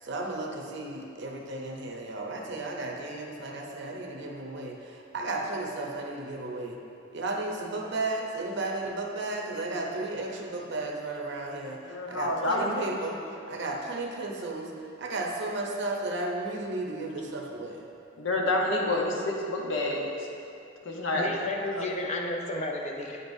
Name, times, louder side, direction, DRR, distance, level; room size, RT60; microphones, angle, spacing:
voice 1, 0.0-6.8 7.1-17.8, right 2 dB, 60° right, 0 dB, 0.7 m, -34 dB
voice 2, 11.8-12.8 18.2-20.3 20.8-21.5 21.8-21.9, left 2 dB, 70° left, -1 dB, 0.9 m, -28 dB
voice 3, 21.1-23.2, left 2 dB, 35° left, 1 dB, 0.6 m, -32 dB
8.5 x 5.4 x 2.6 m, 2.6 s
head